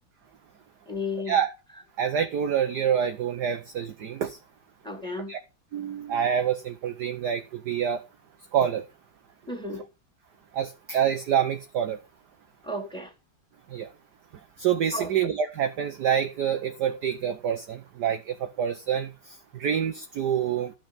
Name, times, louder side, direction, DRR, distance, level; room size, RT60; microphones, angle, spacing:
voice 1, 0.9-1.4 4.8-5.3 9.5-9.8 12.6-13.1 14.9-15.1, left 2 dB, ahead, 3.2 m, -33 dB
voice 2, 2.0-4.4 5.3-5.4 5.7-8.0 8.5-8.8 10.5-12.0 13.7-13.9 14.6-20.7, right 8 dB, 60° right, 1.2 m, -27 dB
13.0 x 6.1 x 5.7 m
omnidirectional pair, 2.4 m